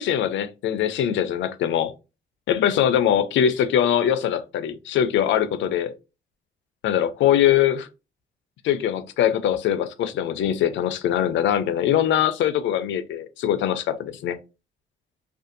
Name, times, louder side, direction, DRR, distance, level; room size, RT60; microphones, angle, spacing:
voice 1, 0.0-1.9 2.5-5.9 6.8-7.9 8.6-14.4, left 10 dB, 70° left, 0.4 m, -22 dB
2.5 x 2.4 x 2.5 m
cardioid pair, 90°, 20 cm